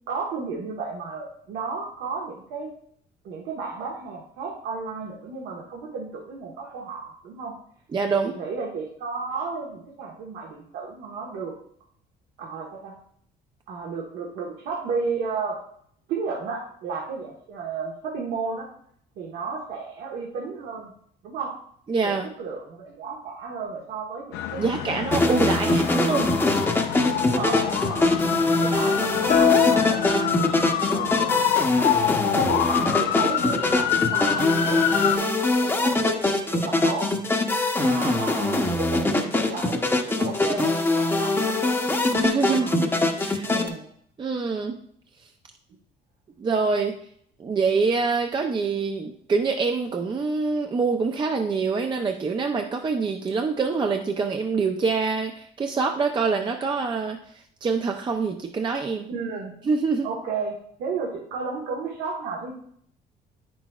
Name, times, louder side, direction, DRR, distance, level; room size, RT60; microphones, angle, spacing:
voice 1, 0.1-2.7 3.2-7.5 8.2-11.5 12.4-12.9 13.7-15.6 16.1-18.7 19.2-20.9 21.2-21.6 22.0-26.5 27.0-28.1 28.6-31.4 32.3-37.1 37.8-39.8 40.0-41.7 42.5-42.8 43.4-43.9 59.1-59.5 60.0-62.5, right 4 dB, 80° right, -3 dB, 1.4 m, -33 dB
voice 2, 7.9-8.3 21.9-22.3 24.6-26.3 42.1-42.9 43.2-43.5 44.2-44.8 46.4-46.9 47.4-59.1 59.6-60.1, right 4 dB, 30° right, 4 dB, 0.5 m, -25 dB
sound 1, 24.3-35.2, left 10 dB, 80° left, 0.5 m, -27 dB
sound 2, 25.1-43.7, left 2 dB, 15° left, 0.9 m, -23 dB
sound 3, 29.3-31.1, left 7 dB, 45° left, 0.6 m, -23 dB
8.6 x 6.2 x 2.4 m, 0.64 s
cardioid pair, 110°, 17 cm